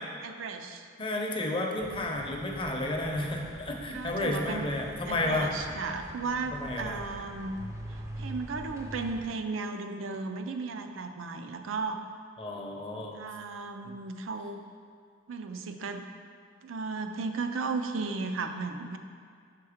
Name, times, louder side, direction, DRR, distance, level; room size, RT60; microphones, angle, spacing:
voice 1, 0.2-0.9 3.9-4.8 5.1-7.6 8.2-12.0 13.1-14.6 15.3-16.1 16.6-19.0, right 4 dB, 80° right, 7 dB, 0.5 m, -35 dB
voice 2, 1.0-5.5 6.5-7.0 12.4-13.2 13.8-13.9, left 1 dB, 25° left, 0 dB, 0.6 m, -32 dB
sound 1, 1.8-9.3, right 1 dB, 15° right, 0.4 m, -44 dB
5.8 x 4.5 x 4.9 m, 2.2 s
head